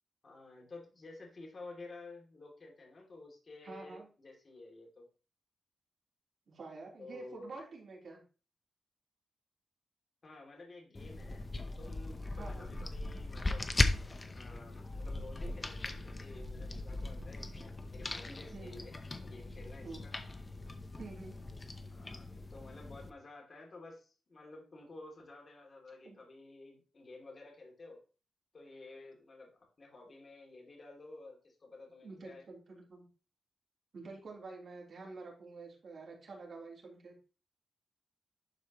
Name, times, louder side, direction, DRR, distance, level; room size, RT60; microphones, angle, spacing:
voice 1, 0.2-5.1 7.0-7.6 10.2-11.4 11.8-13.7 14.3-20.1 21.9-28.0 28.5-29.5 29.8-32.5, left 2 dB, 40° left, -1 dB, 2.8 m, -52 dB
voice 2, 3.6-4.1 6.5-8.2 12.3-12.7 18.5-18.9 19.8-20.0 21.0-21.3 26.0-26.2 32.0-33.1 33.9-37.1, right 3 dB, 60° right, -2 dB, 3.7 m, -48 dB
sound 1, 10.9-23.1, left 2 dB, 25° left, 0.8 m, -38 dB
11.5 x 4.7 x 3.0 m, 0.35 s
wide cardioid pair, 110°, 0 cm